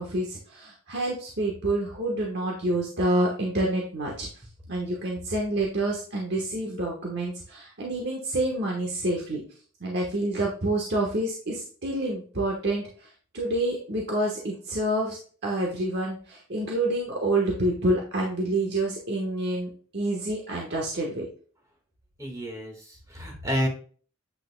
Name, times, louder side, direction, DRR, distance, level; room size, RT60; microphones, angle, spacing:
voice 1, 0.0-4.3 4.7-9.4 9.8-12.8 13.3-21.3, right 1 dB, 50° right, -2 dB, 1.2 m, -28 dB
voice 2, 22.2-23.7, equal, 15° right, 2 dB, 1.6 m, -30 dB
8.3 x 6.3 x 2.2 m, 0.42 s
head